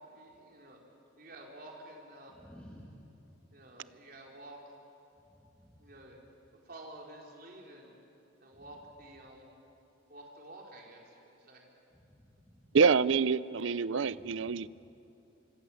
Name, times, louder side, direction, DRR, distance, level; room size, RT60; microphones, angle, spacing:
voice 1, 0.0-0.8 1.2-2.3 3.5-4.7 5.8-6.2 6.7-7.9 8.4-9.5 10.1-11.6, right 1 dB, 45° right, -1 dB, 4.3 m, -50 dB
voice 2, 2.3-3.0 5.6-5.9 11.9-12.7 14.2-14.6, equal, 5° left, -3 dB, 2.0 m, -54 dB
voice 3, 12.7-14.7, right 5 dB, 70° right, 18 dB, 0.5 m, -26 dB
25.5 x 25.0 x 7.2 m, 2.9 s
head